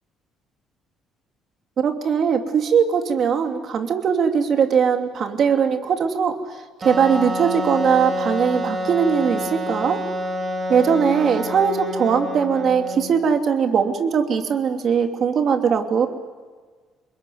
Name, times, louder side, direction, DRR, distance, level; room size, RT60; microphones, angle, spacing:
voice 1, 1.8-6.4 6.8-10.0 10.7-16.1, right 7 dB, 45° right, 4 dB, 2.8 m, -20 dB
Wind instrument woodwind instrument, 6.8-13.3, equal, 20° right, 3.5 m, -28 dB
29.5 x 21.0 x 9.4 m, 1.5 s
cardioid pair, 150°, 0 cm